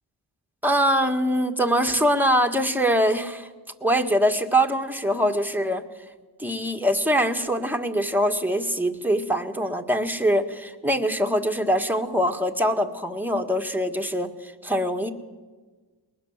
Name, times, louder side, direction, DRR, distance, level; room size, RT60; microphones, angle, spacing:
voice 1, 0.6-3.5 3.8-5.8 6.4-15.1, equal, 5° right, 4 dB, 1.8 m, -23 dB
21.5 x 19.5 x 7.4 m, 1.3 s
wide cardioid pair, 45°, 48 cm